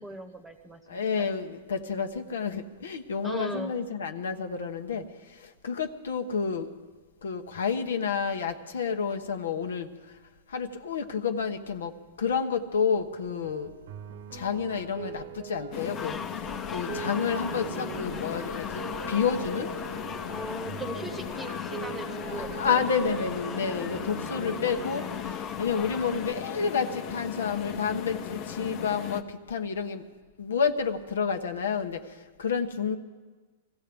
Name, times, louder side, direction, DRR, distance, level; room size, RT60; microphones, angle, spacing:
voice 1, 0.0-1.3 3.2-3.7 20.3-22.8 23.5-23.6, right 1 dB, 5° right, 7 dB, 1.0 m, -39 dB
voice 2, 0.9-6.7 7.2-9.9 10.5-13.7 14.3-16.2 16.7-18.7 19.1-19.7 22.4-30.0 30.4-32.0 32.4-33.0, left 6 dB, 85° left, 7 dB, 1.2 m, -30 dB
sound 1, 13.2-25.3, right 7 dB, 70° right, 1.0 m, -42 dB
sound 2, 15.7-29.2, left 9 dB, 50° left, 1.0 m, -37 dB
sound 3, 16.0-26.3, left 5 dB, 20° left, 0.7 m, -41 dB
24.0 x 15.5 x 3.5 m, 1.3 s
hypercardioid pair, 140°, 0 cm